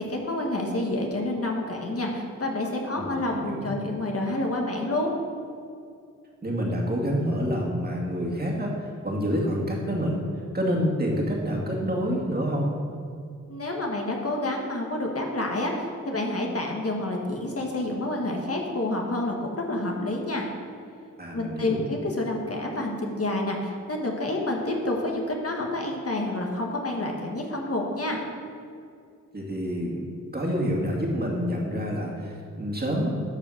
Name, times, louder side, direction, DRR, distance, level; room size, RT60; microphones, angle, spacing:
voice 1, 0.0-5.1 13.5-20.5 21.3-28.2, left 1 dB, 45° left, 0 dB, 1.7 m, -28 dB
voice 2, 3.0-3.7 6.4-10.2 10.5-12.7 21.2-21.8 29.3-33.1, equal, 30° right, -3 dB, 2.4 m, -28 dB
12.0 x 4.9 x 6.5 m, 2.3 s
cardioid pair, 65°, 32 cm